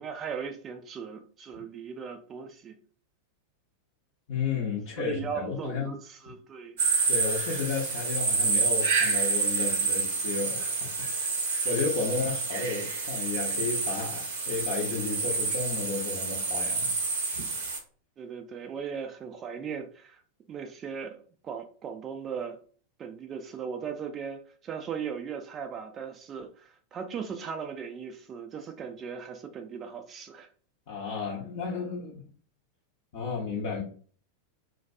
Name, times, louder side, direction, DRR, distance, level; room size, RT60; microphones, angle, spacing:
voice 1, 0.0-2.8 5.0-6.8 18.2-20.2 20.5-22.6 23.0-30.5, right 6 dB, 25° right, 5 dB, 0.3 m, -38 dB
voice 2, 4.3-5.9 7.1-11.3 11.6-16.9 30.9-32.3 33.1-33.8, left 4 dB, 50° left, -5 dB, 0.7 m, -33 dB
sound 1, 6.8-17.8, right 4 dB, 60° right, 0.6 m, -28 dB
2.2 x 2.2 x 2.6 m, 0.44 s
figure-of-eight pair, 90°, 0 cm